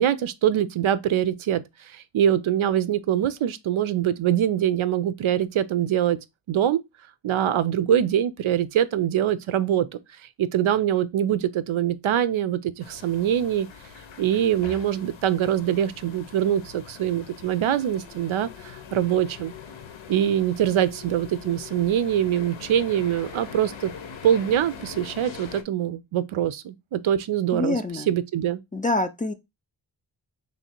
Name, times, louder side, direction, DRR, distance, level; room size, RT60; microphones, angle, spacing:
voice 1, 0.0-6.2 6.5-6.8 7.2-9.9 10.4-13.7 14.2-19.5 20.1-23.9 24.2-27.8 28.1-28.6, right 10 dB, 80° right, 0.5 m, -23 dB
sound 1, 12.8-25.6, left 7 dB, 70° left, 0.7 m, -42 dB
voice 2, 27.5-28.1 28.7-29.3, left 2 dB, 20° left, 0.3 m, -26 dB
3.2 x 2.7 x 4.2 m
wide cardioid pair, 90°, 48 cm